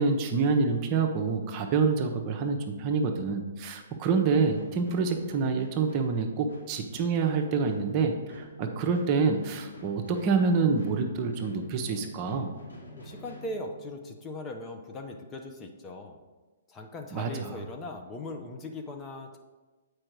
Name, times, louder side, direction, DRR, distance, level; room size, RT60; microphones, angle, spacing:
voice 1, 0.0-12.5 17.1-17.5, right 4 dB, 35° right, 4 dB, 0.8 m, -27 dB
sound 1, 4.0-14.2, equal, 85° left, 1.8 m, -48 dB
voice 2, 13.0-16.2 16.7-19.4, left 2 dB, 20° left, 3 dB, 0.8 m, -39 dB
7.6 x 4.8 x 4.7 m, 1.2 s
figure-of-eight pair, 125°, 0 cm